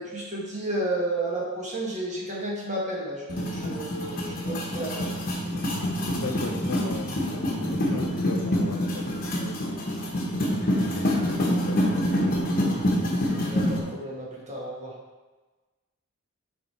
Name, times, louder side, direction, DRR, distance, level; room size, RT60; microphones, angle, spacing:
voice 1, 0.0-5.1 13.3-14.9, right 1 dB, 35° right, -4 dB, 1.5 m, -32 dB
sound 1, 3.3-13.8, equal, 45° left, 1.0 m, -26 dB
voice 2, 6.1-9.8 10.3-12.8, left 3 dB, 85° left, 5 dB, 0.7 m, -38 dB
6.6 x 3.6 x 4.3 m, 1.2 s
head